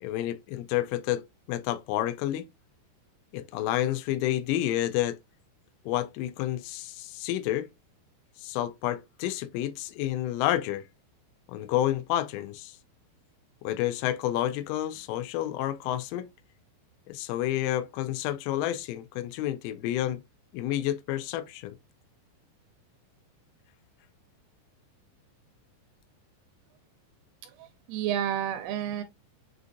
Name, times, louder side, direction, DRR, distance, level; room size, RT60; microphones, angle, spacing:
voice 1, 0.0-2.5 3.3-5.2 5.9-7.7 8.4-10.8 11.5-12.8 13.6-16.3 17.1-20.2 20.5-21.8, left 13 dB, 85° left, 3.1 m, -30 dB
voice 2, 27.4-29.0, right 10 dB, 85° right, 3.1 m, -31 dB
7.2 x 2.6 x 2.5 m
omnidirectional pair, 5.4 m